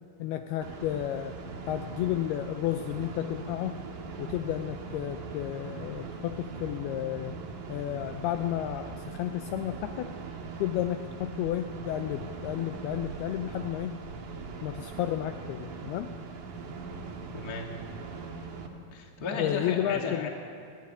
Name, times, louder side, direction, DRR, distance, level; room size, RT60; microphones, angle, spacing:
voice 1, 0.2-1.4 1.7-3.8 4.2-7.4 7.7-10.1 10.6-13.9 14.6-16.1 19.4-20.3, left 12 dB, 80° left, 7 dB, 2.4 m, -32 dB
sound 1, 0.6-18.7, right 4 dB, 60° right, 2.7 m, -41 dB
voice 2, 17.3-17.6 18.9-20.3, left 4 dB, 30° left, 1 dB, 1.8 m, -34 dB
21.5 x 14.0 x 9.9 m, 2.4 s
omnidirectional pair, 5.0 m